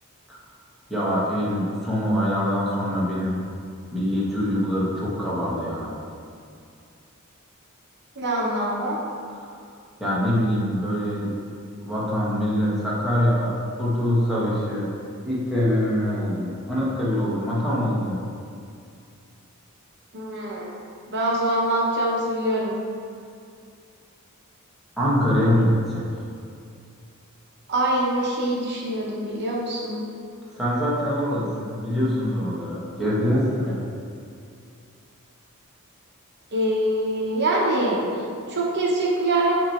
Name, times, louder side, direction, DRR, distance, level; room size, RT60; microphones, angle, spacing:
voice 1, 0.9-3.4 3.9-6.0 10.0-11.3 11.8-14.9 15.2-18.2 25.0-26.1 30.5-34.0, equal, ahead, -9 dB, 1.2 m, -24 dB
voice 2, 8.2-9.0 20.1-20.8 21.1-22.7 27.7-30.0 36.5-38.2 38.5-39.6, right 1 dB, 50° right, -3 dB, 0.8 m, -24 dB
8.6 x 3.0 x 4.3 m, 2.4 s
head